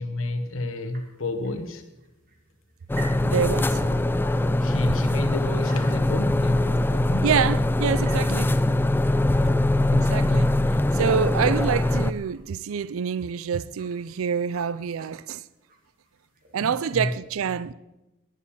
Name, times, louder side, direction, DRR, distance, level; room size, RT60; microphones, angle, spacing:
voice 1, 0.0-1.8 4.6-7.3 9.2-10.5 16.6-17.1, left 1 dB, 65° left, 1.0 m, -31 dB
sound 1, 0.9-15.8 16.1-17.2, right 2 dB, 40° right, 2.2 m, -49 dB
sound 2, 2.9-12.1, left 1 dB, 10° left, 0.4 m, -22 dB
voice 2, 3.2-3.8 7.2-8.5 9.9-10.5 10.9-15.4 16.5-17.7, right 7 dB, 70° right, 0.4 m, -26 dB
11.5 x 11.0 x 7.1 m
head